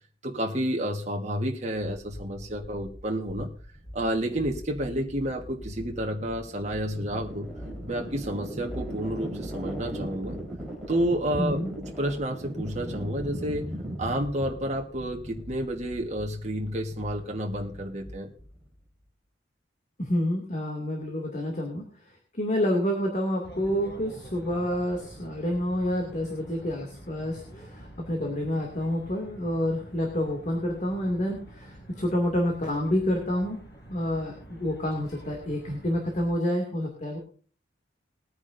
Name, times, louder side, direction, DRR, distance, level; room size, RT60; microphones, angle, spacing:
voice 1, 0.2-3.5 3.9-7.5 7.9-10.4 10.9-13.6 14.0-18.3, right 1 dB, 40° right, 1 dB, 1.4 m, -30 dB
sound 1, 1.8-18.7, equal, ahead, 4.3 m, -39 dB
voice 2, 11.4-11.7 20.0-21.8 22.3-33.6 33.9-37.2, left 1 dB, 40° left, 1 dB, 2.4 m, -28 dB
sound 2, 23.4-36.3, right 1 dB, 60° left, 4.9 m, -47 dB
21.0 x 9.6 x 2.6 m, 0.42 s
head